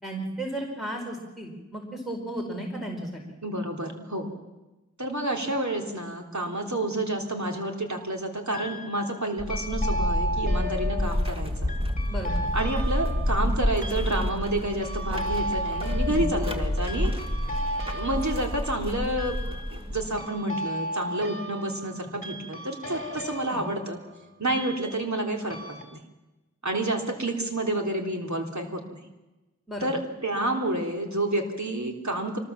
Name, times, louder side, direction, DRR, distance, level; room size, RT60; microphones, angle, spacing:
voice 1, 0.0-3.2 12.1-12.4 16.0-16.2 23.5-23.6 29.7-29.9, right 1 dB, ahead, -2 dB, 4.8 m, -34 dB
voice 2, 3.4-4.3 5.0-11.8 12.5-17.1 17.9-24.0 24.4-26.0 26.6-29.0 29.8-32.4, right 1 dB, 70° right, 2 dB, 3.4 m, -29 dB
sound 1, 7.2-7.8 8.5-9.2 9.5-25.2 25.5-25.8, left 1 dB, 25° left, 3.3 m, -35 dB
sound 2, 9.4-20.2, left 1 dB, 20° right, 2.5 m, -29 dB
25.0 x 20.0 x 7.3 m, 1.1 s
wide cardioid pair, 40°, 29 cm